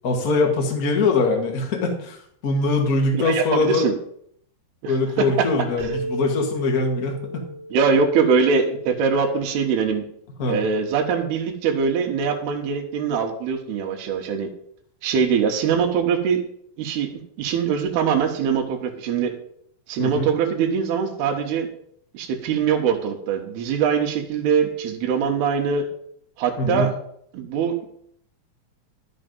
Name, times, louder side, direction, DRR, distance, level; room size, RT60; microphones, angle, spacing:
voice 1, 0.0-2.2 2.4-3.9 4.9-7.4 10.4-10.6 20.0-20.3 26.6-26.9, left 3 dB, 50° left, 2 dB, 1.1 m, -22 dB
voice 2, 3.1-3.9 4.8-5.5 5.8-6.0 7.7-10.0 10.4-14.5 15.0-16.4 16.8-19.3 19.9-21.7 22.1-25.9 26.4-27.0 27.3-27.9, right 6 dB, 80° right, 4 dB, 3.2 m, -22 dB
sound 1, 5.8-9.3, right 1 dB, 20° right, 2.5 m, -34 dB
11.5 x 6.7 x 5.3 m, 0.67 s
omnidirectional pair, 4.6 m